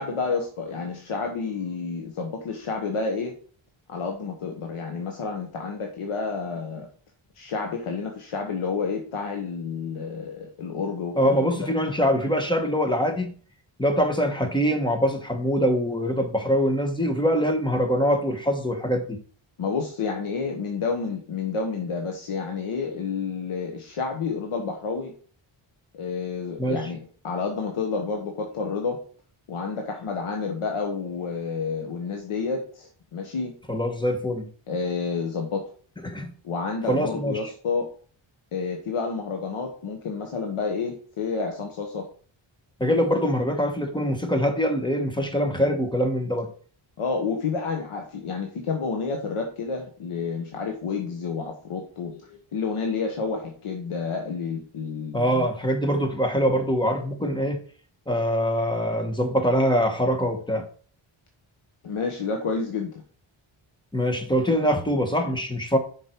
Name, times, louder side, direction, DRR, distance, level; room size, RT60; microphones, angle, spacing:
voice 1, 0.0-3.3 3.9-6.9 7.4-11.7 19.6-25.1 25.9-27.0 27.2-29.0 29.5-33.5 34.7-35.6 36.4-37.9 38.5-42.1 47.0-55.5 61.8-63.0, left 5 dB, 80° left, 2 dB, 1.2 m, -30 dB
voice 2, 11.1-13.4 13.8-19.2 26.6-26.8 33.7-34.5 36.0-36.3 36.9-37.5 42.8-46.5 55.1-57.6 58.1-60.6 63.9-65.8, equal, 10° left, 4 dB, 1.2 m, -23 dB
6.9 x 5.4 x 4.4 m, 0.44 s
wide cardioid pair, 130°, 50 cm